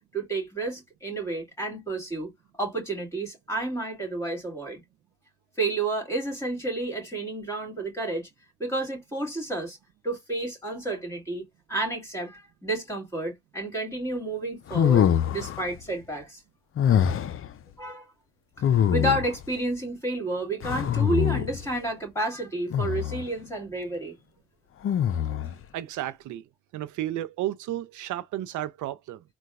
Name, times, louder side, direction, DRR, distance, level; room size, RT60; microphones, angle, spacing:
voice 1, 0.0-2.3 2.6-4.8 5.6-8.3 8.6-9.8 10.0-16.4 17.8-18.1 18.6-24.2, right 2 dB, 10° left, 2.4 m, -31 dB
sound 1, 14.7-15.7 16.8-17.5 18.6-19.4 20.6-21.6 22.7-23.3 24.8-25.6, left 9 dB, 45° left, 0.5 m, -24 dB
voice 2, 25.7-26.4 26.7-29.2, right 13 dB, 75° right, 0.5 m, -32 dB
3.9 x 2.3 x 2.4 m
cardioid pair, 90°, 30 cm